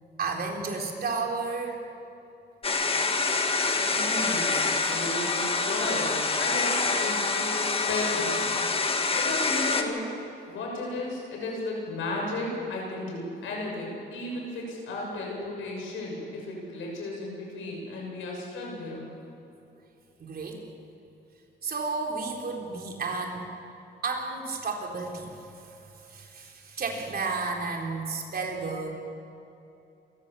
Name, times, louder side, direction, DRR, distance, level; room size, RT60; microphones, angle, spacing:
voice 1, 0.2-1.8 4.8-5.0 20.2-20.6 21.6-23.5 24.0-28.9, right 4 dB, 50° right, 1 dB, 3.9 m, -32 dB
sound 1, 2.6-9.8, left 3 dB, 30° left, 1.9 m, -26 dB
voice 2, 3.9-8.6 9.2-10.0 10.5-19.1, left 2 dB, 80° left, -1 dB, 7.0 m, -34 dB
27.5 x 15.0 x 7.1 m, 2.8 s
cardioid pair, 90°, 20 cm